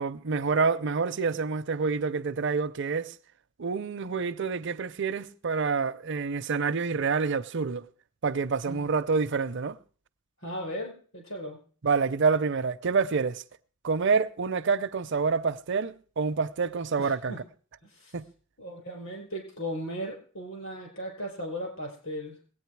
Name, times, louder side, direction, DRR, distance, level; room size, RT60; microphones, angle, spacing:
voice 1, 0.0-3.1 3.6-7.9 8.2-9.8 11.8-13.4 13.8-17.3 18.1-18.3, right 5 dB, 55° right, 0.6 m, -27 dB
voice 2, 10.4-11.6 17.0-17.4 17.8-18.1 18.6-22.4, equal, 70° left, 5.3 m, -37 dB
21.0 x 8.9 x 4.7 m
head